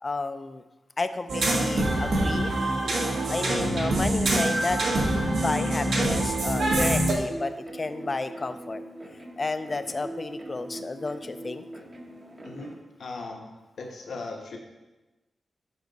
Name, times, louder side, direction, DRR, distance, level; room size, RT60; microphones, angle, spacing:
voice 1, 0.0-0.6 1.0-2.5 3.3-4.8 5.4-8.8 9.4-11.6, left 3 dB, 30° left, 10 dB, 0.4 m, -31 dB
sound 1, 1.3-7.1, right 1 dB, 80° right, 1.3 m, -25 dB
sound 2, 7.3-12.8, right 1 dB, 35° right, 0.8 m, -41 dB
voice 2, 12.4-13.5 13.8-14.6, left 3 dB, 70° left, 1 dB, 1.0 m, -38 dB
7.2 x 5.1 x 3.9 m, 1.1 s
wide cardioid pair, 125°, 0 cm